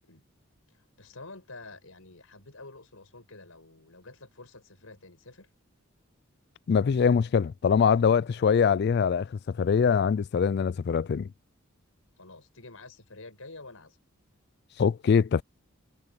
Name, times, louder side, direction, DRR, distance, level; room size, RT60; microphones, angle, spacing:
voice 1, 0.7-5.5 12.2-14.0, left 3 dB, 85° left, 5.4 m, -48 dB
voice 2, 6.7-11.3 14.8-15.4, left 6 dB, 50° left, 0.3 m, -23 dB
head